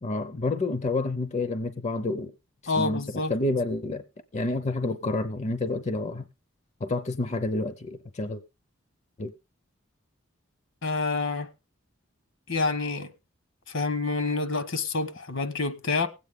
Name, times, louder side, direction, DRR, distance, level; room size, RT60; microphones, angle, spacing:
voice 1, 0.0-2.3 2.6-4.0 4.3-6.3 6.8-8.4 9.2-9.3, left 2 dB, 35° left, 0.6 m, -29 dB
voice 2, 2.7-3.3 10.8-11.5 12.5-13.1 13.7-16.1, left 3 dB, 70° left, 1.1 m, -28 dB
19.5 x 8.3 x 3.6 m
head